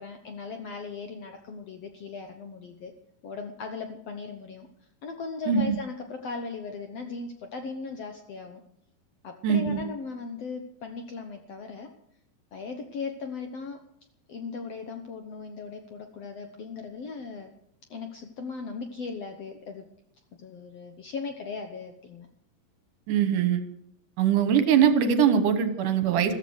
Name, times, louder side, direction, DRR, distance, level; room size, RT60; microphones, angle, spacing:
voice 1, 0.0-2.9 3.2-4.7 5.0-8.6 9.2-11.9 12.5-13.8 14.3-17.5 17.9-19.8 20.4-22.3 25.6-25.9, left 4 dB, 65° left, 5 dB, 1.7 m, -38 dB
voice 2, 9.4-9.8 23.1-23.6 24.2-26.4, right 8 dB, 70° right, 9 dB, 2.6 m, -22 dB
14.5 x 13.5 x 6.4 m, 0.71 s
omnidirectional pair, 4.1 m